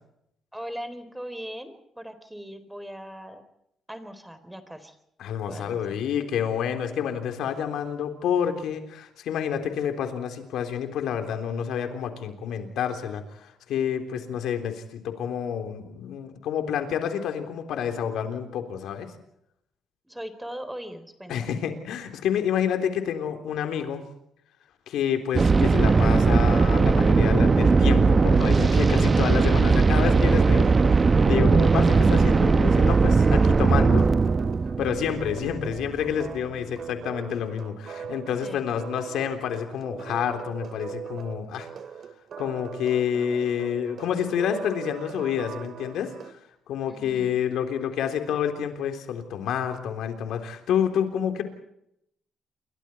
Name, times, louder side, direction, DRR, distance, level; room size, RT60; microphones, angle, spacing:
voice 1, 0.5-3.4 3.9-5.0 5.5-6.0 20.1-21.6 38.4-38.7 46.9-47.4, equal, 5° right, 10 dB, 3.9 m, -39 dB
voice 2, 5.2-19.1 21.3-24.0 24.9-34.1 34.8-41.7 42.4-46.4 46.7-51.4, left 8 dB, 80° left, 6 dB, 3.7 m, -28 dB
sound 1, 25.3-36.1, right 4 dB, 30° right, 0.8 m, -19 dB
sound 2, 30.1-46.3, right 7 dB, 60° right, 2.2 m, -39 dB
28.5 x 24.0 x 4.6 m, 0.77 s
cardioid pair, 90°, 0 cm